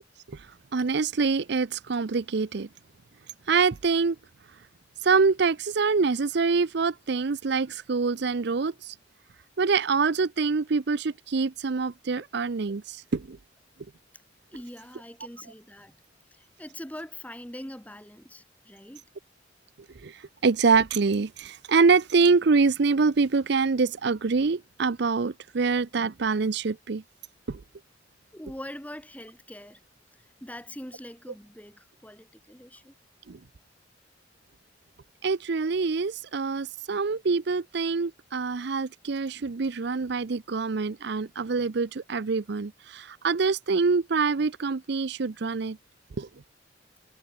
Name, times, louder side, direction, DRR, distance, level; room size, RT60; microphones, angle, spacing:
voice 1, 0.7-2.7 3.5-4.2 5.0-8.9 9.6-13.4 20.0-27.0 27.5-27.6 33.3-33.4 35.2-45.8 46.2-46.3, right 4 dB, 60° right, 0.6 m, -25 dB
voice 2, 14.5-15.9 16.3-19.0 28.3-29.8 30.4-32.9, left 1 dB, 10° left, 3.3 m, -43 dB
head